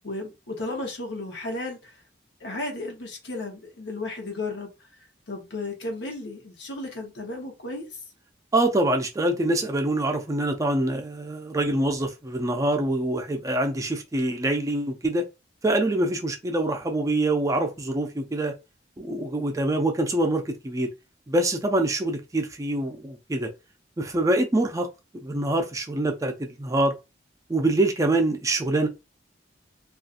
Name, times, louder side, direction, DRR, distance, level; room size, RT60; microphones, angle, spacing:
voice 1, 0.0-1.9 2.4-4.7 5.3-7.9, left 2 dB, 75° left, 0.9 m, -34 dB
voice 2, 8.5-15.3 15.6-18.5 19.0-20.9 21.3-23.5 24.0-24.9 25.1-26.9 27.5-28.9, right 1 dB, 20° right, 0.4 m, -25 dB
2.6 x 2.4 x 2.4 m
head